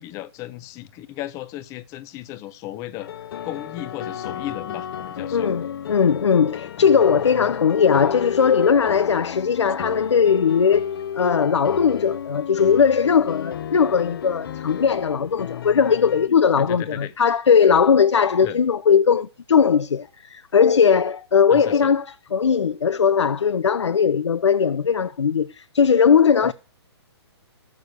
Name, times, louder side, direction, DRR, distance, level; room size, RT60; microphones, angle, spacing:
voice 1, 0.0-3.1 3.4-5.5 16.6-17.1 18.4-18.6 21.5-21.9 26.4-26.5, left 14 dB, 20° left, 0.9 m, -35 dB
sound 1, 3.0-16.3, left 9 dB, 55° left, 1.4 m, -33 dB
voice 2, 5.3-10.9 11.1-26.5, left 6 dB, 85° left, 0.9 m, -19 dB
14.5 x 6.7 x 8.3 m
hypercardioid pair, 150°, 14 cm